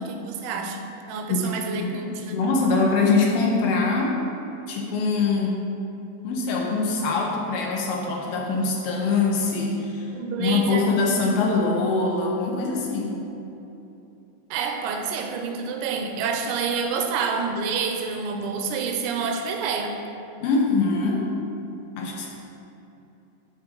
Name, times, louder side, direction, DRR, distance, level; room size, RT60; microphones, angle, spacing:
voice 1, 0.0-2.4 10.1-10.9 14.5-20.0, right 5 dB, 90° right, 3 dB, 3.0 m, -28 dB
voice 2, 1.3-2.0 2.3-4.2 4.7-5.5 6.2-10.1 10.4-13.2 20.4-21.3 22.0-22.3, left 3 dB, 90° left, -1 dB, 2.1 m, -23 dB
11.0 x 4.6 x 3.9 m, 3.0 s
omnidirectional pair, 5.2 m